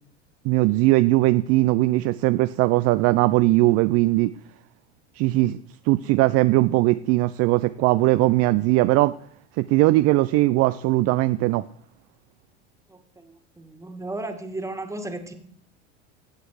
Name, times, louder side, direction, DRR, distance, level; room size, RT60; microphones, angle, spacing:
voice 1, 0.4-4.3 5.1-9.2 9.6-11.6, right 19 dB, 45° right, 14 dB, 0.4 m, -20 dB
voice 2, 12.9-15.3, right 2 dB, 10° right, 7 dB, 1.9 m, -35 dB
14.5 x 8.2 x 4.8 m, 0.65 s
hypercardioid pair, 95°, 34 cm